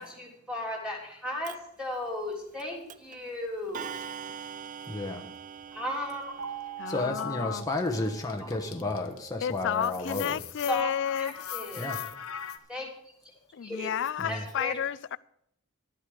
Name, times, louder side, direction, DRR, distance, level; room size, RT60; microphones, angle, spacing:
voice 1, 0.0-4.0 5.7-6.5 10.7-10.9 11.2-12.0 12.7-12.9 13.6-13.9 14.3-14.7, left 1 dB, 5° right, 3.3 m, -35 dB
Clock, 1.4-1.6 2.6-2.7 2.9-3.2 3.7-7.0, right 7 dB, 35° right, 0.4 m, -42 dB
voice 2, 4.9-5.3 6.9-10.4 11.8-12.0 14.2-14.4, left 2 dB, 15° left, 1.1 m, -32 dB
sound 1, 6.4-9.3, right 9 dB, 70° right, 2.9 m, -43 dB
voice 3, 6.8-7.7 9.4-11.3 13.5-15.2, left 8 dB, 55° left, 0.3 m, -31 dB
sound 2, 7.6-9.3 9.6-12.6, left 9 dB, 75° left, 0.9 m, -40 dB
11.5 x 8.1 x 6.4 m
head